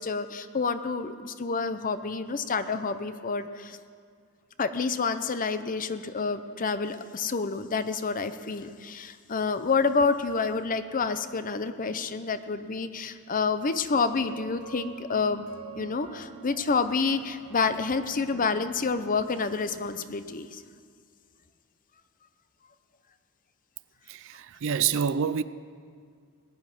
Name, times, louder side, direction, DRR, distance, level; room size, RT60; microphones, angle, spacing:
voice 1, 0.0-3.8 4.6-15.5 15.8-20.6, left 4 dB, 40° left, 0.6 m, -28 dB
sound 1, 14.0-19.8, right 5 dB, 85° right, 2.8 m, -46 dB
voice 2, 24.1-25.4, right 7 dB, 60° right, 0.4 m, -27 dB
19.5 x 9.5 x 6.0 m
head